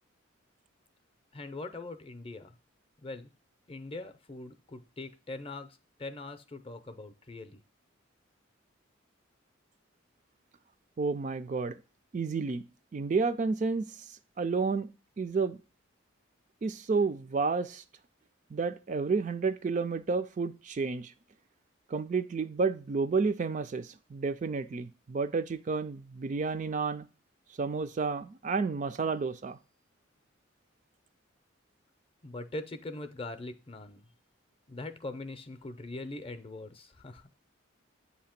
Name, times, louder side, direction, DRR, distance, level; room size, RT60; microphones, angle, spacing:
voice 1, 1.3-2.5 3.0-3.3 3.7-7.6 32.2-34.0 34.7-37.2, left 2 dB, 25° left, 0.6 m, -42 dB
voice 2, 11.0-11.8 12.1-12.6 12.9-13.9 14.4-14.9 15.2-15.6 16.6-17.8 18.5-21.1 21.9-27.1 27.6-29.6, right 4 dB, 40° right, 0.3 m, -30 dB
8.5 x 2.9 x 5.8 m
head